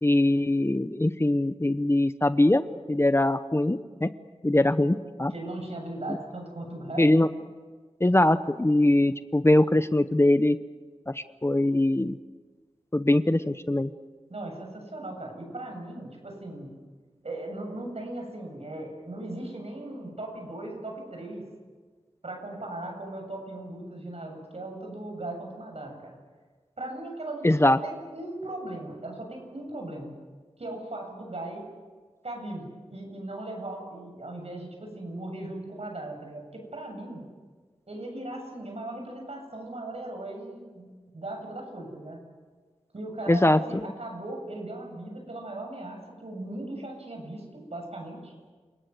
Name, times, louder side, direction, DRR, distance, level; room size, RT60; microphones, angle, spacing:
voice 1, 0.0-2.6 2.9-4.1 4.4-5.3 7.0-7.3 8.0-10.6 11.1-12.2 12.9-13.9 27.4-27.8 43.3-43.6, left 1 dB, 20° left, 12 dB, 0.8 m, -22 dB
voice 2, 5.3-7.2 14.3-16.7 17.2-21.5 22.2-26.1 26.8-30.1 30.6-31.7 32.2-37.3 37.9-42.2 42.9-48.3, right 1 dB, 65° right, 2 dB, 7.6 m, -38 dB
28.5 x 18.5 x 8.0 m, 1.4 s
wide cardioid pair, 60°, 11 cm